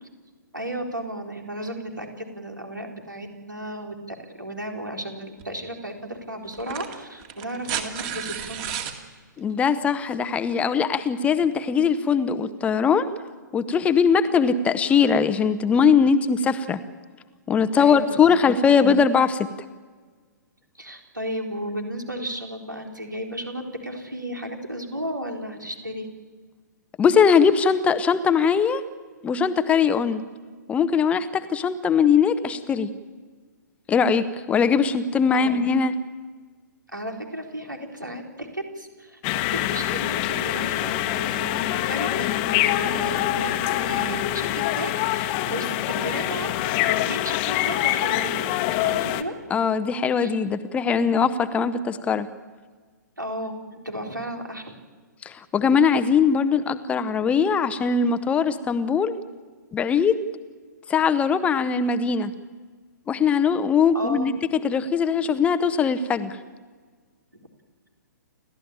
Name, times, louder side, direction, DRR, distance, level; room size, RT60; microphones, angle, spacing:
voice 1, 0.5-8.7 17.8-18.3 18.7-18.9 20.7-26.1 35.3-35.6 36.9-46.5 46.8-49.3 50.2-50.3 53.2-53.6 53.8-54.8 63.9-64.4, right 1 dB, 90° right, 2 dB, 4.0 m, -34 dB
sound 1, 5.4-5.5 6.5-9.0 10.5-10.6, right 9 dB, 30° right, 2.1 m, -32 dB
voice 2, 9.4-13.1 13.5-16.8 17.5-19.5 27.0-28.8 29.2-30.2 30.7-32.9 33.9-35.9 49.5-52.3 55.2-59.2 59.7-60.2 60.9-62.3 63.1-66.4, left 6 dB, 15° left, 12 dB, 0.8 m, -21 dB
sound 2, 39.2-49.2, left 14 dB, 30° left, 1.1 m, -25 dB
29.5 x 13.5 x 8.8 m, 1.5 s
figure-of-eight pair, 120°, 10 cm